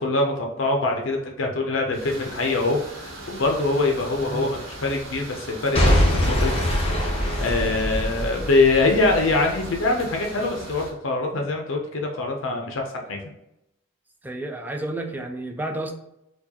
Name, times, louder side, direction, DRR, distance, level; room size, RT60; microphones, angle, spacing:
voice 1, 0.0-6.5 7.0-13.2, left 3 dB, 70° left, 1 dB, 0.5 m, -24 dB
sound 1, 1.9-10.9, right 1 dB, 70° right, 0.9 m, -39 dB
Boom / Shatter / Crushing, 5.7-9.7 10.3-10.4, left 1 dB, 30° left, 1.0 m, -23 dB
voice 2, 14.2-15.9, right 1 dB, 10° right, 3 dB, 0.3 m, -31 dB
4.5 x 2.3 x 2.8 m, 0.86 s
head